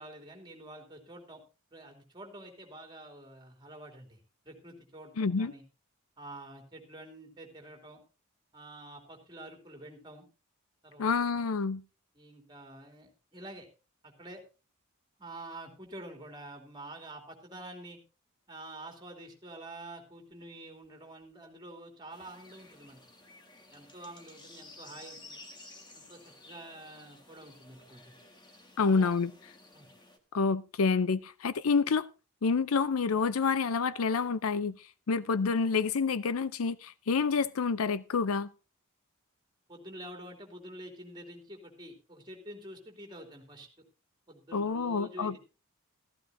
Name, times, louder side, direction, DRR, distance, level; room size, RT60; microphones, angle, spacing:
voice 1, 0.0-1.4 1.7-4.2 4.4-5.6 6.2-8.0 8.5-10.3 10.8-11.4 12.1-13.7 14.0-14.4 15.2-18.0 18.5-23.0 23.7-25.4 25.9-28.1 28.8-29.1 29.7-29.9 39.7-43.7 44.3-45.4, right 1 dB, 20° right, 2.9 m, -47 dB
voice 2, 5.2-5.5 11.0-11.8 28.8-29.3 30.3-32.1 32.4-34.7 35.1-38.5 44.5-45.4, left 5 dB, 70° left, 0.5 m, -28 dB
sound 1, 22.1-30.2, left 2 dB, 20° left, 1.6 m, -54 dB
14.5 x 14.0 x 2.6 m
head